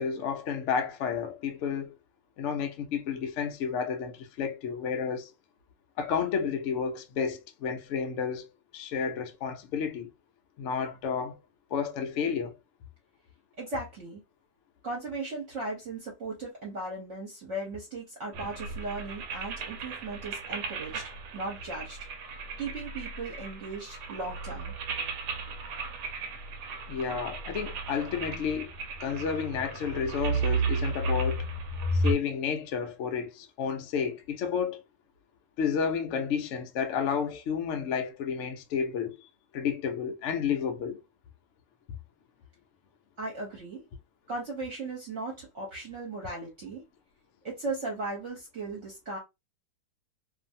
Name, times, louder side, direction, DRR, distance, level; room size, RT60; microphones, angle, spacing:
voice 1, 0.0-1.9 2.4-5.3 6.0-10.1 10.6-11.4 11.7-12.6 26.9-28.7 29.0-31.5 31.9-34.8 35.6-39.3 39.5-41.0, left 6 dB, 80° left, 0.6 m, -31 dB
voice 2, 13.6-14.2 14.8-22.0 22.6-24.7 43.2-43.8 44.3-46.8 47.4-49.2, right 2 dB, 50° right, 1.1 m, -37 dB
sound 1, 18.3-32.1, right 3 dB, 75° right, 1.2 m, -34 dB
2.7 x 2.5 x 2.6 m
omnidirectional pair, 1.9 m